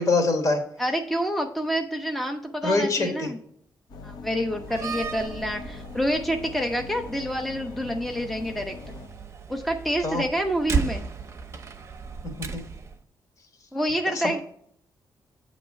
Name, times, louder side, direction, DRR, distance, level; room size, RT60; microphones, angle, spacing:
voice 1, 0.0-0.6 2.6-3.3 10.0-10.2 12.5-12.6 14.1-14.4, left 3 dB, 50° left, 4 dB, 1.5 m, -24 dB
voice 2, 0.8-3.4 4.0-8.8 9.5-11.1 13.7-14.4, equal, 5° left, 4 dB, 0.6 m, -28 dB
sound 1, 3.9-9.1, left 4 dB, 70° left, 0.7 m, -42 dB
Slam, 4.6-13.0, right 5 dB, 40° right, 0.7 m, -35 dB
8.0 x 3.1 x 6.1 m, 0.67 s
cardioid pair, 120°, 7 cm